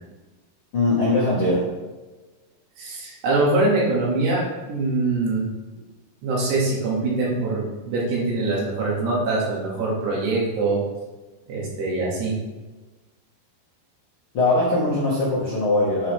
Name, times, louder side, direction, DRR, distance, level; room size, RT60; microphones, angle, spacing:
voice 1, 0.7-1.6 14.3-16.1, left 2 dB, 80° left, -7 dB, 1.2 m, -21 dB
voice 2, 2.8-4.4 4.7-5.5 6.2-10.8 11.5-12.4, right 2 dB, 70° right, -4 dB, 4.0 m, -23 dB
8.5 x 6.2 x 3.5 m, 1.2 s
omnidirectional pair, 5.1 m